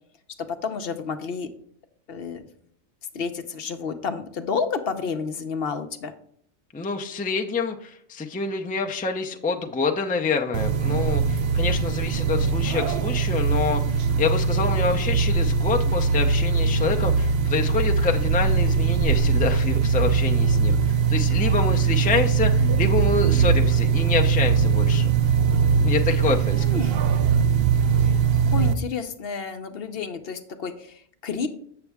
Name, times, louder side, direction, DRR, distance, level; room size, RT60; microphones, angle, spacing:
voice 1, 0.4-1.5 2.1-2.5 3.1-6.1 26.6-27.0 28.0-31.5, left 5 dB, 65° left, 8 dB, 0.9 m, -30 dB
voice 2, 6.7-25.1 25.8-26.7, left 4 dB, 10° left, 3 dB, 0.4 m, -27 dB
sound 1, 10.5-28.7, right 6 dB, 65° right, 0.8 m, -21 dB
8.2 x 6.9 x 3.4 m, 0.63 s
omnidirectional pair, 1.1 m